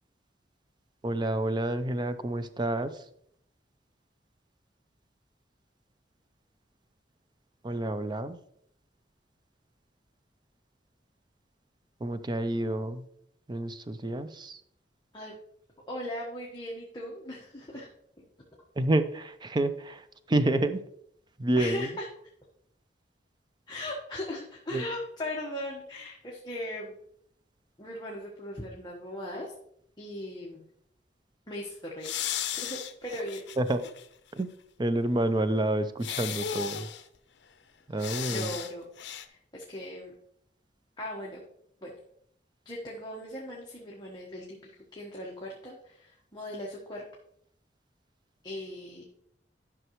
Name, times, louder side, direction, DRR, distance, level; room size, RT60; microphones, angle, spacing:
voice 1, 1.0-3.0 7.6-8.4 12.0-13.1 13.5-14.6 18.8-20.8 21.4-21.9 24.7-24.8 33.6-33.8 34.3-34.5 34.8-36.9 37.9-38.5, right 1 dB, 25° right, 11 dB, 0.5 m, -29 dB
voice 2, 15.9-17.9 18.2-18.3 21.6-22.1 23.7-27.0 27.8-29.5 30.0-30.6 31.5-32.1 32.5-33.4 38.3-38.9 39.1-40.1 41.0-41.4 41.8-41.9 42.6-47.0 48.4-49.1, left 1 dB, 25° left, -3 dB, 1.2 m, -38 dB
sound 1, 32.0-34.1 34.4-34.5 36.0-37.0 38.0-38.7 39.0-39.3, left 9 dB, 75° left, 0.6 m, -35 dB
11.0 x 6.0 x 3.1 m, 0.70 s
head